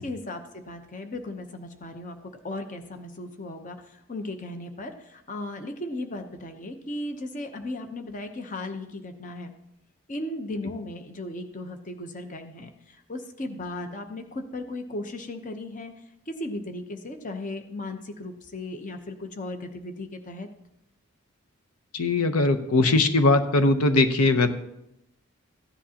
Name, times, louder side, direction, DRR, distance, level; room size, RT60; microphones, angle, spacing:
voice 1, 0.0-9.5 10.1-15.9 16.3-20.5, left 2 dB, 35° left, 6 dB, 0.8 m, -36 dB
voice 2, 21.9-24.5, left 2 dB, 90° left, 7 dB, 0.8 m, -20 dB
15.5 x 10.0 x 2.9 m, 0.82 s
head